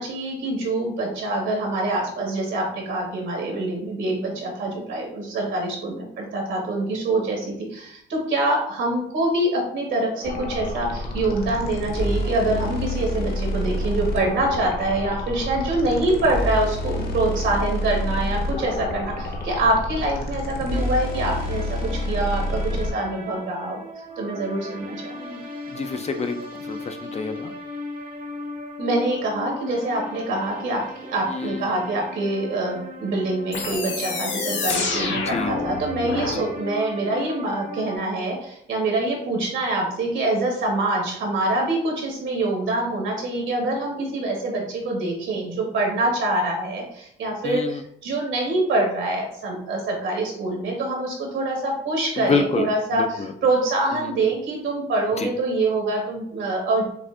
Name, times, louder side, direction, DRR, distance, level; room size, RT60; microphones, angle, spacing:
voice 1, 0.0-23.8 24.2-25.4 28.8-30.8 31.1-56.8, right 2 dB, 75° right, -1 dB, 1.8 m, -25 dB
sound 1, 10.2-22.9, left 1 dB, 50° left, 1.1 m, -28 dB
sound 2, 20.7-38.0, left 1 dB, 45° right, 1.0 m, -37 dB
voice 2, 25.7-27.5 31.3-31.7 35.1-35.5 36.2-36.5 47.4-47.8 52.2-53.3 54.0-54.1 55.2-55.3, left 4 dB, 35° left, 6 dB, 0.5 m, -28 dB
sound 3, 33.5-36.4, left 3 dB, 70° left, 1.2 m, -28 dB
6.6 x 2.5 x 2.6 m, 0.71 s
cardioid pair, 90°, 20 cm